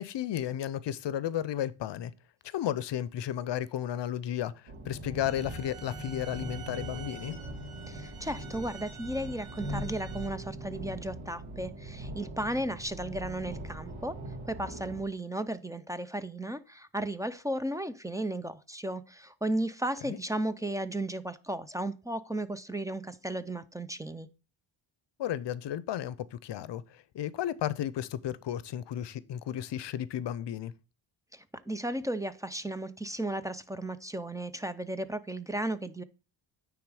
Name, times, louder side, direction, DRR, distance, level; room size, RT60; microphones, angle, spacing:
voice 1, 0.0-2.1 2.5-4.5 4.8-7.4 20.1-20.2 25.2-26.8 27.1-30.7, left 11 dB, 60° left, 0.6 m, -33 dB
sound 1, 4.7-15.0, right 1 dB, 75° right, 2.0 m, -41 dB
sound 2, 5.2-10.3, right 7 dB, 45° right, 1.6 m, -49 dB
voice 2, 7.9-14.1 14.5-24.3 31.3-36.0, right 1 dB, 5° right, 0.4 m, -35 dB
9.4 x 3.7 x 4.8 m
cardioid pair, 95°, 48 cm